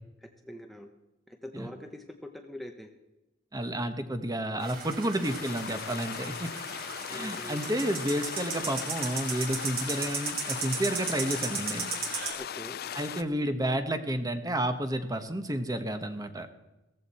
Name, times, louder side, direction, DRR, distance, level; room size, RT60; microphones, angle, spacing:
voice 1, 0.2-0.9 1.4-2.9 7.1-7.8 12.4-12.8, equal, ahead, 3 dB, 0.7 m, -44 dB
voice 2, 3.5-6.5 7.1-11.9 12.9-16.5, right 1 dB, 20° right, 8 dB, 1.0 m, -31 dB
sound 1, 4.6-12.3, right 5 dB, 50° right, 3.5 m, -36 dB
sound 2, 5.2-13.2, left 9 dB, 50° left, 0.4 m, -39 dB
16.0 x 14.5 x 4.2 m, 1.0 s
head